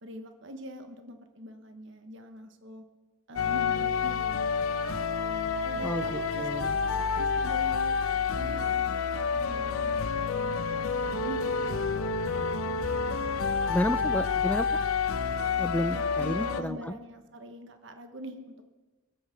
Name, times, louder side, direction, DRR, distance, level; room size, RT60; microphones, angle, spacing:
voice 1, 0.0-2.8 3.3-4.9 5.3-8.0 8.3-8.7 9.2-12.0 15.7-18.6, right 1 dB, 55° right, 6 dB, 1.1 m, -44 dB
sound 1, 3.4-16.6, left 5 dB, 80° left, 0.8 m, -29 dB
voice 2, 6.4-6.7 13.7-14.8 15.6-17.0, left 1 dB, 5° left, 12 dB, 0.4 m, -31 dB
sound 2, 9.3-14.4, right 1 dB, 20° right, 1.2 m, -47 dB
23.0 x 8.0 x 6.1 m, 1.2 s
head